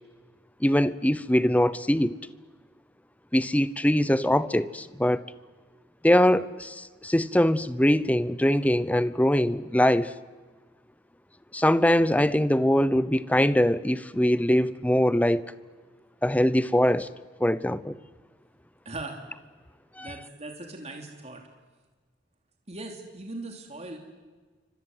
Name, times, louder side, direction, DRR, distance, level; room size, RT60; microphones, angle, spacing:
voice 1, 0.6-2.2 3.3-5.2 6.0-10.1 11.5-15.4 16.2-17.1 17.4-18.0 20.0-20.1, left 1 dB, 10° left, 0.8 m, -22 dB
voice 2, 18.8-19.2 20.0-21.4 22.7-24.0, right 2 dB, 35° right, 3.3 m, -39 dB
29.0 x 25.5 x 8.0 m
head